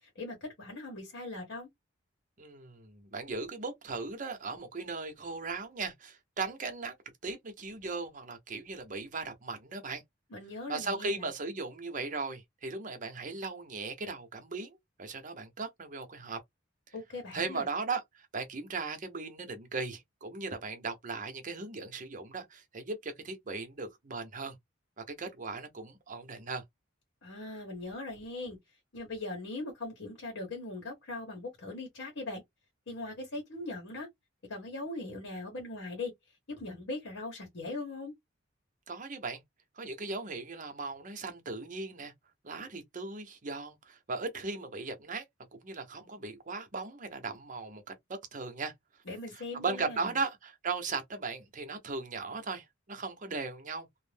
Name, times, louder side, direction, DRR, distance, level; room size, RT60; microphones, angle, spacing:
voice 1, 0.0-1.7 10.3-11.2 16.9-17.7 27.2-28.6 28.9-32.4 32.9-34.1 34.5-36.1 36.5-38.1 49.1-50.1, left 2 dB, 70° left, 1.1 m, -40 dB
voice 2, 2.4-6.9 7.2-10.0 10.7-16.4 16.9-17.0 17.3-24.6 25.0-26.6 38.9-39.4 39.8-42.1 42.4-45.2 45.5-47.8 48.1-48.7 49.3-53.9, right 4 dB, 40° right, 0.7 m, -38 dB
2.5 x 2.0 x 3.3 m
head